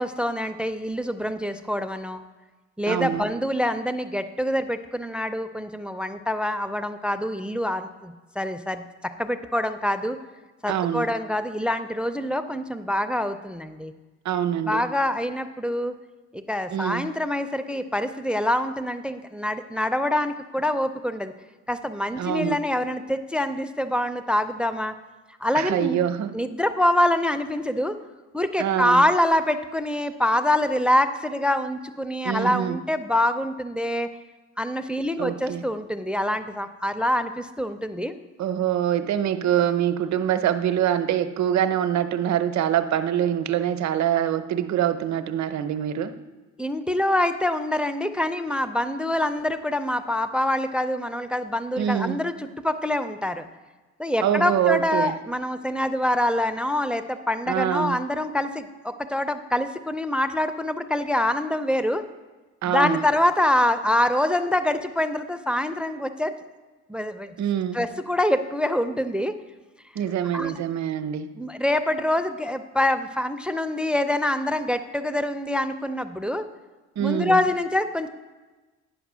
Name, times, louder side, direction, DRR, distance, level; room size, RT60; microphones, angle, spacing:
voice 1, 0.0-2.2 2.8-10.2 10.6-13.9 14.6-15.9 16.3-21.3 21.7-24.9 25.4-26.0 26.3-28.0 28.3-34.1 34.6-38.1 46.6-53.4 54.0-62.0 62.6-66.3 66.9-67.3 67.7-69.3 70.3-70.5 71.4-76.5 77.0-78.1, left 1 dB, 5° right, 10 dB, 0.4 m, -25 dB
voice 2, 2.9-3.3 10.7-11.1 14.2-14.8 16.7-17.1 22.2-22.6 25.5-26.3 28.6-29.0 32.2-32.8 35.2-35.6 38.4-46.1 51.8-52.2 54.2-55.2 57.5-58.0 62.6-63.0 67.4-67.8 69.9-71.3 77.0-77.4, right 10 dB, 65° right, 11 dB, 0.7 m, -24 dB
10.0 x 5.0 x 6.1 m, 1.2 s
cardioid pair, 90°, 30 cm